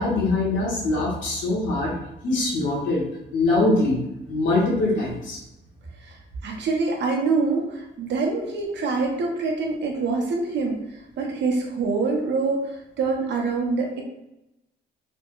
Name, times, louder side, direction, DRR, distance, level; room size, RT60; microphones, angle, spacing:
voice 1, 0.0-1.9 2.2-3.0 3.3-4.0 4.3-5.4, left 2 dB, 85° left, -4 dB, 1.2 m, -23 dB
voice 2, 6.0-10.8 11.2-14.0, right 4 dB, 65° right, 1 dB, 0.8 m, -25 dB
3.3 x 2.2 x 3.0 m, 0.90 s
cardioid pair, 120°, 19 cm